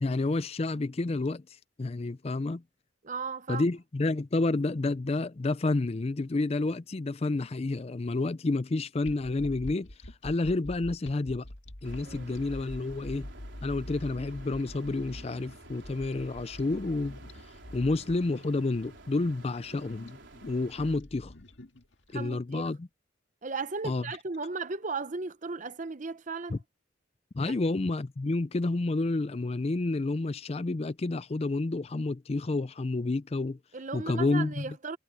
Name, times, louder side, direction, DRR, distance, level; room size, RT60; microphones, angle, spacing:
voice 1, 0.0-1.4 1.8-2.6 3.5-9.9 10.2-11.5 11.8-13.3 13.6-17.2 17.7-20.2 20.5-21.3 22.1-22.8 23.8-24.0 26.5-26.6 27.3-33.6 33.9-34.6, left 2 dB, 30° left, 0.4 m, -29 dB
voice 2, 3.0-3.6 12.0-12.3 22.1-22.6 23.4-26.6 27.4-27.6 33.7-35.0, right 4 dB, 40° right, 0.8 m, -36 dB
sound 1, 9.0-22.1, left 1 dB, 70° left, 1.9 m, -45 dB
sound 2, 11.8-21.0, right 2 dB, 70° right, 4.1 m, -52 dB
head